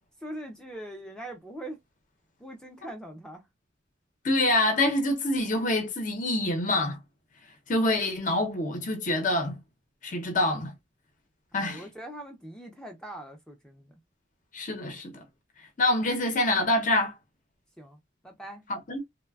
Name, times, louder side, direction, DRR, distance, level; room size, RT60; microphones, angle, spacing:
voice 1, 0.2-1.8 2.4-3.5 11.5-13.9 17.8-18.0 18.2-18.6, right 1 dB, 5° left, 0.4 m, -42 dB
voice 2, 4.2-7.0 7.7-9.6 10.0-10.7 11.5-11.8 14.5-15.2 15.8-17.1 18.7-19.0, left 1 dB, 45° left, 0.6 m, -26 dB
3.1 x 2.1 x 2.3 m
head